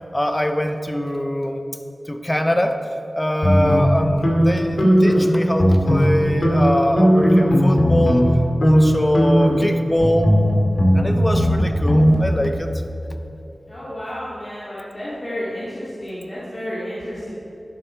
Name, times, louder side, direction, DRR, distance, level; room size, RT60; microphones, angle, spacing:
voice 1, 0.1-1.6 2.1-2.8 3.1-8.3 8.6-10.3 10.9-12.7, equal, 15° left, 7 dB, 0.8 m, -22 dB
sound 1, 3.4-5.3 5.5-6.2 6.4-8.3 8.6-8.8 9.1-12.1, equal, 65° left, 2.3 m, -17 dB
voice 2, 13.7-17.3, equal, 30° left, -10 dB, 2.7 m, -31 dB
12.5 x 11.0 x 4.6 m, 3.0 s
wide cardioid pair, 90°, 0 cm